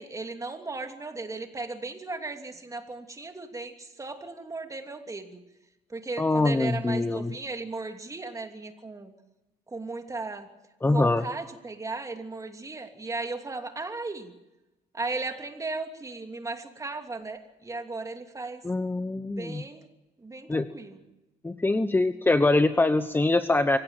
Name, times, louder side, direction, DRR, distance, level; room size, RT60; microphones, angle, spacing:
voice 1, 0.0-5.4 5.9-9.1 9.7-10.5 10.8-14.3 14.9-18.6 19.4-19.8 20.2-21.0, right 3 dB, 20° right, 5 dB, 2.9 m, -36 dB
voice 2, 6.2-7.3 10.8-11.2 18.6-19.6 20.5-20.7 21.4-23.8, left 2 dB, 10° left, 10 dB, 1.0 m, -24 dB
24.5 x 17.0 x 9.0 m, 1.0 s
cardioid pair, 110°, 17 cm